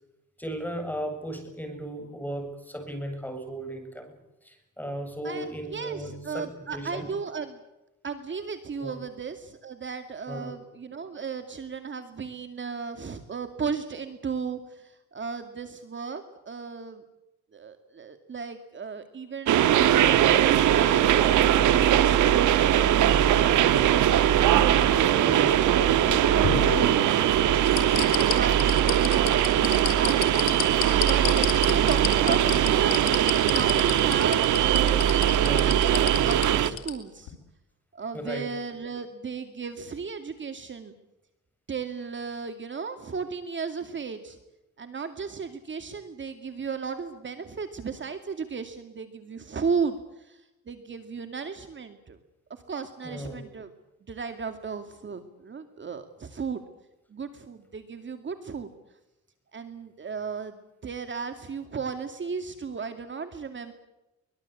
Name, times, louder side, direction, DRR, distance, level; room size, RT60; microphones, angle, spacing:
voice 1, 0.4-4.1 4.4-7.1 8.8-9.0 10.3-10.6 25.2-25.5 35.4-35.7 38.1-38.5 53.0-53.4, equal, 5° left, 6 dB, 8.0 m, -36 dB
voice 2, 5.2-7.6 8.0-17.0 17.5-22.8 23.4-24.2 24.5-28.6 28.8-29.4 30.0-30.1 30.9-37.3 37.9-40.9 41.7-44.4 44.8-52.2 52.5-53.7 54.1-56.6 57.1-58.7 59.5-60.6 60.8-63.7, right 5 dB, 40° right, 7 dB, 2.4 m, -35 dB
sound 1, 19.5-36.7, right 11 dB, 80° right, 1.6 m, -21 dB
sound 2, 25.9-27.2 27.6-36.9 37.3-37.4, left 11 dB, 90° left, 3.7 m, -31 dB
24.0 x 21.0 x 8.5 m, 0.94 s
cardioid pair, 90°, 30 cm